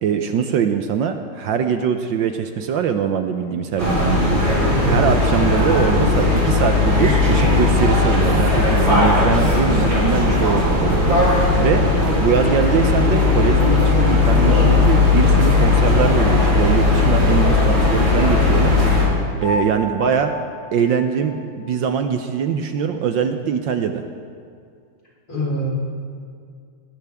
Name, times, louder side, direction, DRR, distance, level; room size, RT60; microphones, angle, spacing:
voice 1, 0.0-4.4 4.9-11.9 12.2-18.8 19.4-20.4 20.7-24.0, right 7 dB, 70° right, 7 dB, 1.4 m, -22 dB
sound 1, 3.8-19.1, left 3 dB, 45° right, 4.7 m, -17 dB
sound 2, 17.4-21.8 22.1-22.2, left 2 dB, 70° left, 4.8 m, -32 dB
voice 2, 25.3-25.7, right 1 dB, 45° left, -5 dB, 4.8 m, -24 dB
20.0 x 18.5 x 3.6 m, 2.3 s
omnidirectional pair, 2.3 m